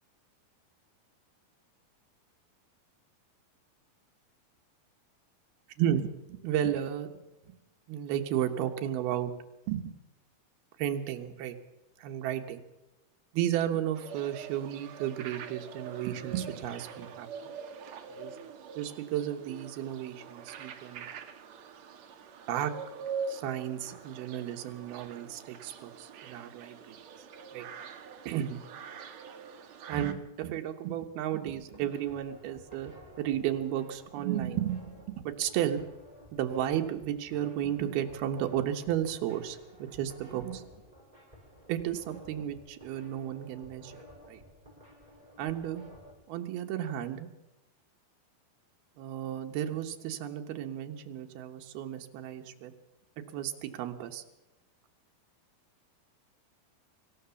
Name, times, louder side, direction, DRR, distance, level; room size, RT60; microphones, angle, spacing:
voice 1, 6.4-7.1 7.9-9.3 9.7-9.8 10.8-11.5 12.0-12.6 13.3-17.3 18.1-18.4 18.8-21.1 22.5-22.7 23.3-27.0 27.5-27.7 28.3-28.6 29.9-32.9 33.2-34.8 35.1-35.8 36.3-40.6 41.7-44.0 44.3-44.4 45.4-45.8 46.3-47.3 49.0-52.7 53.3-54.2, right 11 dB, 90° right, 5 dB, 3.1 m, -33 dB
sound 1, 14.0-30.1, right 6 dB, 60° right, 2.2 m, -44 dB
sound 2, 31.6-46.1, equal, 10° right, 6.3 m, -54 dB
25.0 x 15.0 x 7.0 m, 0.98 s
omnidirectional pair, 4.3 m